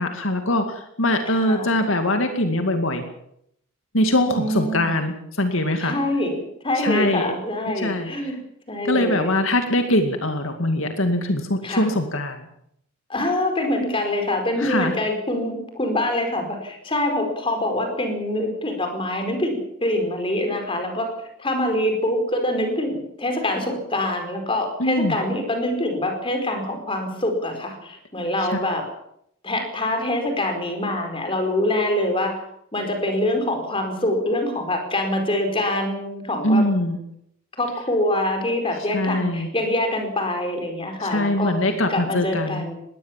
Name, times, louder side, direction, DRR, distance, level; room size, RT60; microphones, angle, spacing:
voice 1, 0.0-3.0 3.9-6.0 6.8-7.3 7.8-8.3 8.9-12.5 14.6-14.9 24.8-25.2 28.5-28.6 36.4-37.0 38.9-39.5 41.0-42.6, left 1 dB, 70° left, 6 dB, 2.2 m, -22 dB
voice 2, 1.3-1.7 4.3-4.9 5.8-8.4 8.7-9.3 11.6-11.9 13.1-21.1 21.4-28.8 29.4-32.4 32.7-36.7 37.6-41.6 41.9-42.7, left 1 dB, 25° left, 5 dB, 4.8 m, -25 dB
21.0 x 17.0 x 7.4 m, 0.73 s
head